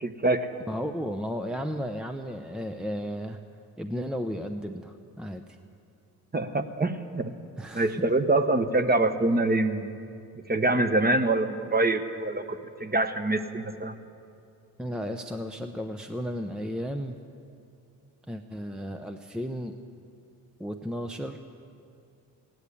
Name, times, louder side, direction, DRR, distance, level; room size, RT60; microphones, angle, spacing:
voice 1, 0.0-0.5 6.3-7.3 7.7-9.9 10.5-13.9, right 2 dB, 20° right, 8 dB, 1.1 m, -25 dB
voice 2, 0.7-3.4 3.8-5.4 7.6-8.0 14.8-17.2 18.3-19.7 20.6-21.4, equal, ahead, 5 dB, 0.7 m, -34 dB
16.0 x 10.5 x 8.3 m, 2.4 s
supercardioid pair, 60°, 43 cm